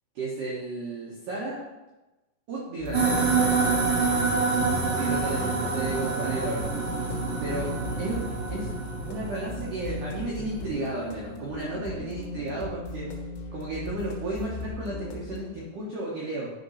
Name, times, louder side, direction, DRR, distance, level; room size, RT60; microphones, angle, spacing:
voice 1, 0.2-1.6 2.5-3.7 4.9-6.7 7.4-7.7 8.0-8.7 9.1-13.1 13.5-16.5, right 2 dB, 85° right, -5 dB, 1.8 m, -33 dB
sound 1, 2.8-15.5, left 1 dB, 75° left, 3.6 m, -37 dB
sound 2, 2.9-10.6, right 4 dB, 45° right, 3.2 m, -27 dB
10.5 x 3.9 x 5.5 m, 1.0 s
omnidirectional pair, 6.0 m